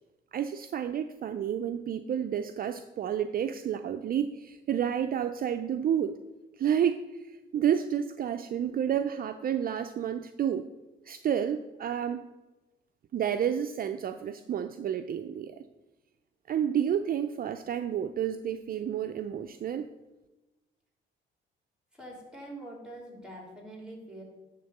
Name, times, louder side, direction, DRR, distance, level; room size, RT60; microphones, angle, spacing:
voice 1, 0.3-6.2 6.6-10.7 11.0-12.3 13.1-15.6 16.5-19.9, right 9 dB, 50° right, 9 dB, 0.4 m, -30 dB
voice 2, 21.9-24.2, right 1 dB, 5° right, 0 dB, 3.2 m, -44 dB
10.5 x 3.6 x 6.6 m, 1.1 s
cardioid pair, 90°, 20 cm